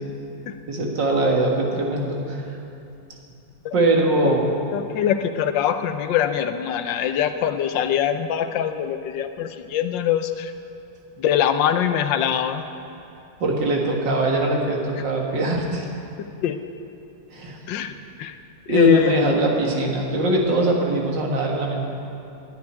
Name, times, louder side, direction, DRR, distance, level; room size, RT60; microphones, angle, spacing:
voice 1, 0.7-2.4 3.7-4.5 13.4-15.9 17.3-17.6 18.7-21.8, right 2 dB, 75° right, -1 dB, 2.4 m, -22 dB
voice 2, 4.7-10.5 11.2-12.6 16.4-16.6 17.7-17.9 18.2-18.3 18.7-19.3, left 9 dB, 90° left, 9 dB, 1.4 m, -22 dB
10.5 x 9.4 x 9.9 m, 2.7 s
omnidirectional pair, 2.0 m